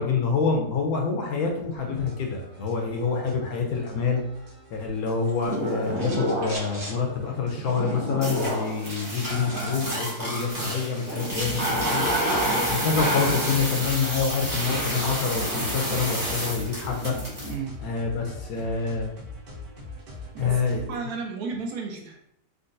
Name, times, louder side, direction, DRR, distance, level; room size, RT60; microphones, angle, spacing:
voice 1, 0.0-4.2 4.7-12.1 12.8-17.1 17.8-19.1 20.4-20.8, left 5 dB, 70° left, 1 dB, 1.0 m, -27 dB
sound 1, 1.8-21.0, left 2 dB, 90° right, 1.5 m, -43 dB
sound 2, 5.2-7.0 7.6-8.1 8.8-9.8 10.2-10.6 10.9-11.0 11.1-13.3, right 1 dB, 45° right, 1.2 m, -42 dB
sound 3, 5.4-6.8 7.2-17.5, right 1 dB, 15° right, 0.9 m, -29 dB
voice 2, 20.3-22.2, right 5 dB, 70° right, 1 dB, 1.0 m, -34 dB
3.7 x 2.2 x 2.5 m, 0.74 s
omnidirectional pair, 1.8 m